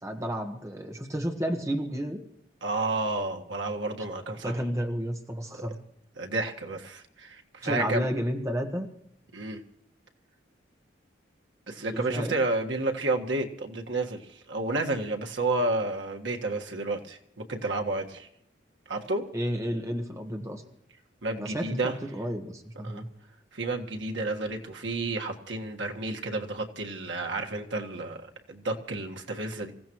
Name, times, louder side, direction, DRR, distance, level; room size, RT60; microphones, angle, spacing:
voice 1, 0.0-2.2 4.4-5.8 7.6-8.9 11.9-12.4 19.3-20.6 21.4-23.1, equal, 15° right, 4 dB, 1.4 m, -31 dB
voice 2, 2.6-4.6 6.2-8.0 9.3-9.6 11.7-18.3 18.9-19.3 21.2-21.9 22.8-23.0 23.5-29.7, right 2 dB, 90° right, 3 dB, 1.6 m, -31 dB
26.0 x 15.5 x 3.1 m, 0.74 s
head